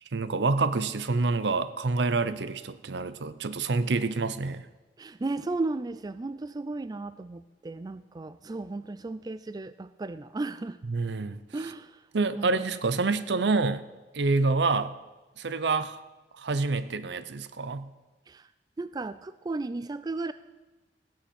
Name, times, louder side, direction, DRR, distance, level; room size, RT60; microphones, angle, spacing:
voice 1, 0.1-4.7 10.9-11.4 12.1-13.8 14.1-14.9 15.4-16.0 16.4-17.9, right 3 dB, 75° right, 14 dB, 0.7 m, -27 dB
voice 2, 5.0-10.8 11.5-12.1 12.4-12.7 18.3-18.5 18.8-20.3, right 3 dB, 20° right, 14 dB, 0.3 m, -35 dB
16.0 x 6.5 x 8.5 m, 1.2 s
head